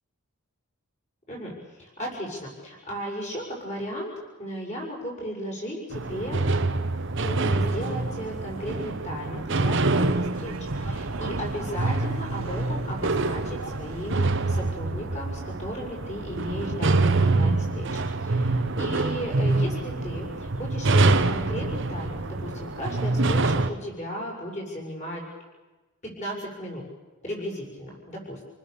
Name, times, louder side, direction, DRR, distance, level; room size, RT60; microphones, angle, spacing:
voice 1, 1.3-6.4 7.2-25.5 26.0-26.8 27.2-28.4, equal, 30° left, -1 dB, 6.9 m, -35 dB
sound 1, 5.9-23.7, right 2 dB, 55° right, 1.0 m, -26 dB
sound 2, 9.8-14.7, right 2 dB, 70° right, 1.8 m, -42 dB
29.0 x 19.5 x 7.0 m, 1.2 s
head